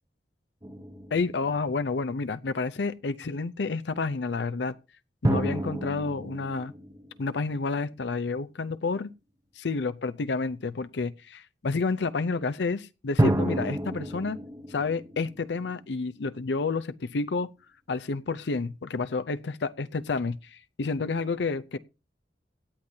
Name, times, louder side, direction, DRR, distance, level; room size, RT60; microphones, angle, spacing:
sound 1, 0.6-2.3 5.2-7.9 13.2-16.2, right 1 dB, 20° right, 0.9 m, -30 dB
voice 1, 1.1-4.8 5.2-6.7 7.2-9.1 9.6-14.4 14.7-17.5 17.9-21.8, left 4 dB, 75° left, 0.6 m, -30 dB
17.0 x 9.6 x 2.7 m
head